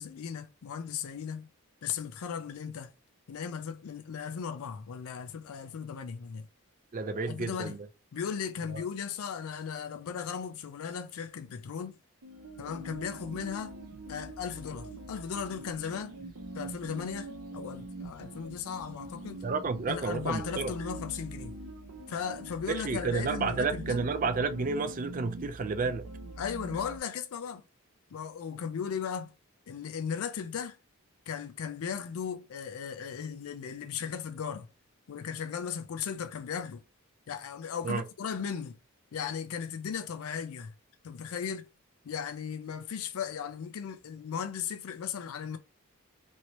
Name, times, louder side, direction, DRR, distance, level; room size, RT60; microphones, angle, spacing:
voice 1, 0.0-1.5 1.8-2.9 3.3-6.5 7.3-7.8 8.1-12.0 12.6-13.7 14.1-16.1 16.5-19.4 19.9-21.6 22.1-24.0 26.4-27.6 28.1-29.3 29.7-30.8 31.3-34.7 35.1-36.8 37.3-38.8 39.1-40.7 41.0-41.7 42.0-45.6, left 7 dB, 80° left, 0.4 m, -36 dB
voice 2, 6.9-7.8 19.4-20.7 22.7-26.1 37.8-38.0, right 4 dB, 35° right, 0.4 m, -31 dB
sound 1, 12.2-27.0, right 2 dB, 90° right, 0.7 m, -43 dB
3.0 x 2.7 x 3.0 m
head